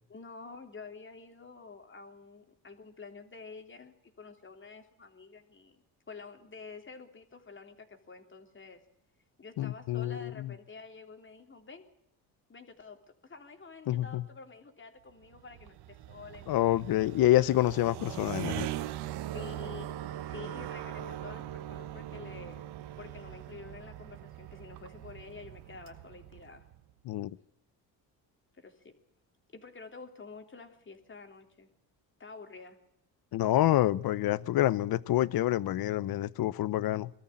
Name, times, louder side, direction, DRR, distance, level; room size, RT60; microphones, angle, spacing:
voice 1, 0.1-8.8 9.4-11.9 12.5-13.0 13.2-16.5 19.3-20.0 20.3-22.6 23.0-26.7 28.6-29.0 29.5-31.7 32.2-32.8, left 4 dB, 30° left, 3.3 m, -49 dB
voice 2, 9.6-10.5 13.9-14.2 16.5-18.7 27.1-27.4 33.3-37.1, left 14 dB, 70° left, 0.8 m, -27 dB
sound 1, 15.2-26.8, right 13 dB, 85° right, 1.1 m, -41 dB
23.0 x 13.5 x 8.9 m
cardioid pair, 90°, 38 cm